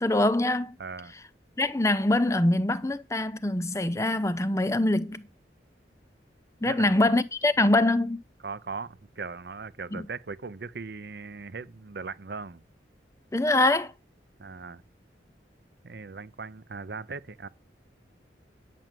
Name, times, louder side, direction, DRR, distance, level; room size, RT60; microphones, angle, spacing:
voice 1, 0.0-0.8 1.6-5.2 6.6-8.2 9.9-10.0 13.3-13.9, left 2 dB, 15° left, 0.5 m, -24 dB
voice 2, 0.8-1.1 6.6-7.0 8.4-12.6 14.4-14.8 15.8-17.5, right 4 dB, 60° right, 0.6 m, -39 dB
9.1 x 6.4 x 7.5 m
head